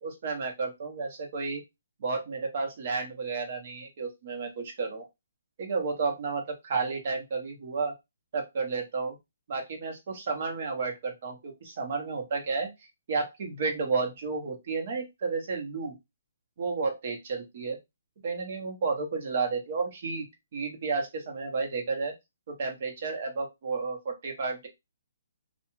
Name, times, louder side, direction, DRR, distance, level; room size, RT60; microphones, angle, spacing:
voice 1, 0.0-1.6 2.0-5.0 5.6-7.9 8.3-9.2 9.5-12.7 13.1-16.0 16.6-17.8 18.2-20.3 20.5-22.1 22.5-24.7, right 4 dB, 50° right, 3 dB, 0.9 m, -32 dB
2.3 x 2.3 x 3.0 m, 0.21 s
hypercardioid pair, 155°, 0 cm